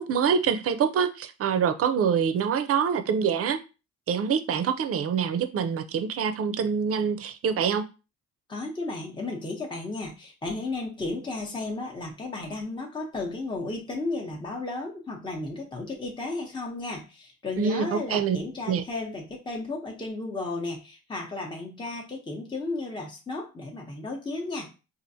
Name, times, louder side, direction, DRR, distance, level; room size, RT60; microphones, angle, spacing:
voice 1, 0.0-3.6 4.1-7.8 17.6-18.4 18.7-18.8, right 7 dB, 50° right, 0.5 m, -25 dB
voice 2, 8.5-24.7, left 2 dB, 15° left, 0.8 m, -34 dB
4.3 x 2.5 x 2.7 m
cardioid pair, 90°, 30 cm